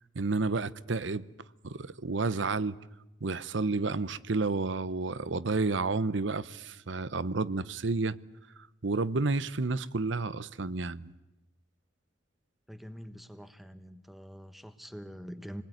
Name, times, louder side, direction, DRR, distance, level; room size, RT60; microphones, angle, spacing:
voice 1, 0.1-1.3 1.6-2.8 3.2-8.2 8.8-11.1, right 3 dB, 75° right, 0.8 m, -30 dB
voice 2, 12.7-15.6, equal, ahead, 1.3 m, -45 dB
28.5 x 20.0 x 9.4 m
head